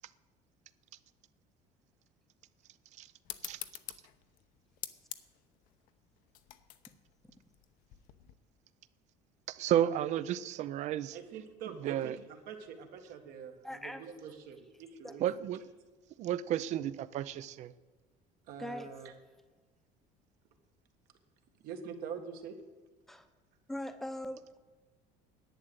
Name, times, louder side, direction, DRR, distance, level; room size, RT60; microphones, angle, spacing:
sound 1, 3.2-8.3, left 13 dB, 60° left, 0.8 m, -47 dB
voice 1, 9.5-11.2 11.8-12.2 15.2-15.6 16.2-17.7, right 11 dB, 45° right, 17 dB, 0.5 m, -32 dB
voice 2, 11.1-15.4 18.5-19.1 21.6-22.6, right 7 dB, 65° right, 5 dB, 1.7 m, -45 dB
voice 3, 13.6-14.1 15.0-15.2 18.6-18.9 23.1-23.3 23.7-24.6, left 1 dB, ahead, 9 dB, 0.8 m, -41 dB
11.0 x 8.8 x 8.0 m, 1.3 s
cardioid pair, 160°, 16 cm